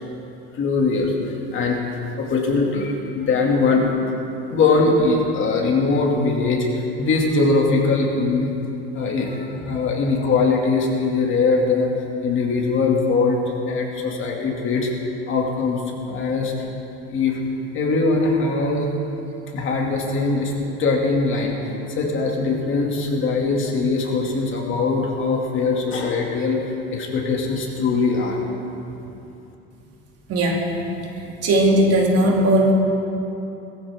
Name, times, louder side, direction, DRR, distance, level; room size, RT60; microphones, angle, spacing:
voice 1, 0.5-1.8 2.2-3.8 4.5-8.5 8.9-11.9 12.2-13.4 13.7-14.9 15.3-15.8 16.1-16.5 17.1-17.4 17.7-18.9 19.5-20.5 20.8-28.6, left 3 dB, 40° left, -1 dB, 2.5 m, -21 dB
voice 2, 30.3-30.6 31.4-32.7, right 1 dB, 50° right, -1 dB, 2.7 m, -17 dB
21.0 x 14.5 x 3.7 m, 2.9 s
cardioid pair, 140°, 32 cm